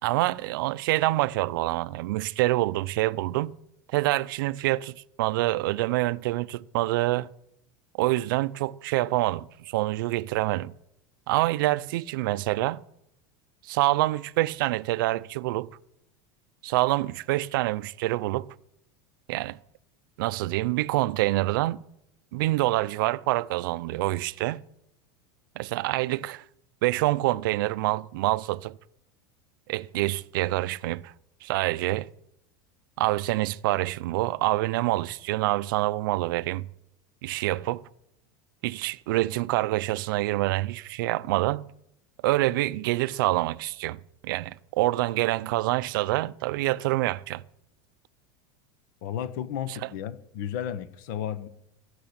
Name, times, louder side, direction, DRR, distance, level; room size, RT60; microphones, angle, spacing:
voice 1, 0.0-3.6 3.9-7.3 8.0-10.7 11.3-12.8 13.6-15.8 16.6-18.5 19.3-19.6 20.2-21.8 22.3-24.6 25.6-26.4 26.8-28.8 29.7-31.1 31.4-32.1 33.0-36.7 37.2-37.8 38.6-41.7 42.2-47.4 49.7-49.9, right 18 dB, 75° right, 0.5 m, -26 dB
voice 2, 49.0-51.5, left 9 dB, 60° left, 1.1 m, -33 dB
16.5 x 6.7 x 8.8 m
supercardioid pair, 160°, 11 cm